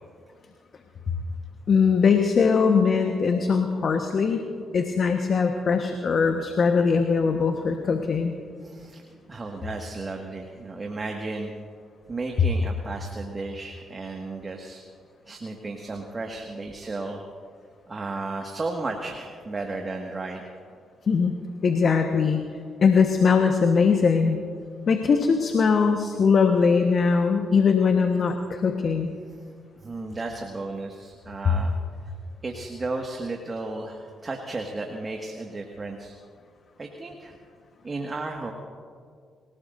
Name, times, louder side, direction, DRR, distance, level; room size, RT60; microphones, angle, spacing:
voice 1, 1.7-4.4 4.7-8.3 21.1-21.3 21.6-22.4 22.8-24.4 24.9-29.1, left 5 dB, 55° left, 4 dB, 1.3 m, -21 dB
voice 2, 8.6-9.0 9.3-11.5 12.1-14.8 15.3-17.2 17.9-20.4 29.8-31.7 32.0-32.1 32.4-36.1 36.8-37.4 37.8-38.5, right 3 dB, 35° right, 2 dB, 1.9 m, -34 dB
27.5 x 18.0 x 2.7 m, 2.1 s
hypercardioid pair, 50°, 0 cm